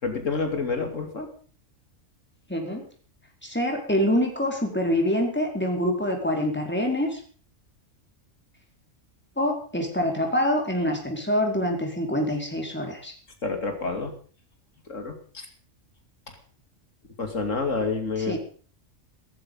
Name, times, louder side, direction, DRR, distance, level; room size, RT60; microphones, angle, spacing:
voice 1, 0.0-1.3 13.4-14.1 14.9-15.5 17.2-18.4, left 4 dB, 75° left, 5 dB, 3.1 m, -28 dB
voice 2, 2.5-2.8 3.4-7.2 9.4-13.1 18.2-18.4, equal, 10° left, 2 dB, 4.4 m, -25 dB
17.5 x 15.0 x 5.5 m, 0.43 s
omnidirectional pair, 1.3 m